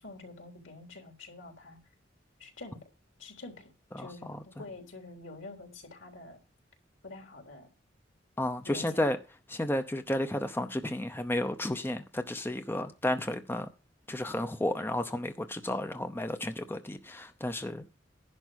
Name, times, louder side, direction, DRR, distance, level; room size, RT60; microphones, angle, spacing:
voice 1, 0.0-1.8 2.4-2.8 3.2-6.4 7.0-7.7 8.6-9.0, left 2 dB, 85° left, 3.5 m, -47 dB
voice 2, 3.9-4.4 8.4-9.2 9.5-13.7 14.1-18.0, left 1 dB, 10° left, 0.7 m, -32 dB
11.0 x 4.6 x 8.0 m
head